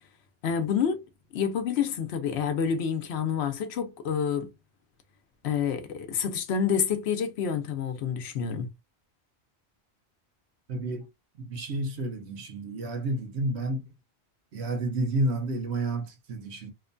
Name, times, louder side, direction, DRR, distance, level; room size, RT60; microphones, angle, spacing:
voice 1, 0.4-1.0 1.3-4.5 5.4-8.7, left 7 dB, 75° left, 0.9 m, -28 dB
voice 2, 10.7-11.1 11.4-13.9 14.5-16.7, right 2 dB, 85° right, 1.0 m, -30 dB
3.0 x 2.2 x 2.5 m
omnidirectional pair, 1.1 m